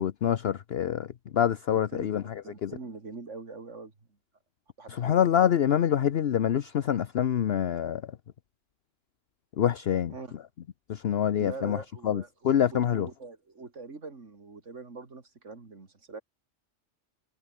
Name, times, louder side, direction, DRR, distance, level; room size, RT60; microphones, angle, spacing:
voice 1, 0.0-2.3 2.6-2.7 4.9-8.0 9.6-10.1 10.9-11.8 12.0-13.1, left 9 dB, 60° left, 0.9 m, -26 dB
voice 2, 1.7-3.9 4.8-5.3 10.1-10.4 11.4-12.3 12.7-16.2, right 3 dB, 75° right, 3.0 m, -43 dB
omnidirectional pair, 1.3 m